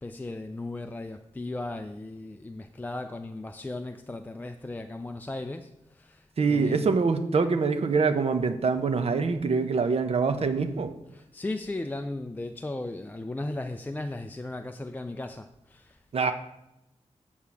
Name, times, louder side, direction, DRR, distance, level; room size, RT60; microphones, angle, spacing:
voice 1, 0.0-7.0 11.1-16.0, left 2 dB, 15° left, 0.4 m, -36 dB
voice 2, 6.4-10.9 16.1-16.3, right 4 dB, 55° right, 0.9 m, -25 dB
8.7 x 4.6 x 7.2 m
wide cardioid pair, 145°, 12 cm